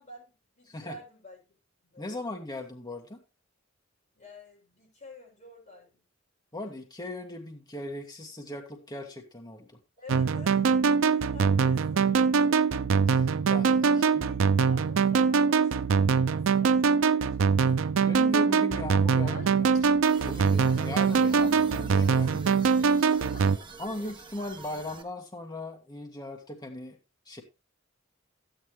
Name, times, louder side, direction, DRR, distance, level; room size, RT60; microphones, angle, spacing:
voice 1, 0.0-1.4 1.9-2.2 4.1-6.0 10.0-12.8 13.8-17.9, left 2 dB, 35° left, -2 dB, 7.0 m, -50 dB
voice 2, 0.7-1.0 2.0-3.2 6.5-9.8 13.1-14.2 17.6-22.6 23.8-27.0 27.3-27.4, left 1 dB, 20° left, 2 dB, 1.7 m, -39 dB
sound 1, 10.1-23.6, right 5 dB, 70° right, 0.5 m, -23 dB
Speech, 18.8-24.8, left 2 dB, 60° left, 3.6 m, -49 dB
sound 2, 20.0-25.0, right 4 dB, 25° right, 1.4 m, -47 dB
12.5 x 9.3 x 3.2 m, 0.27 s
head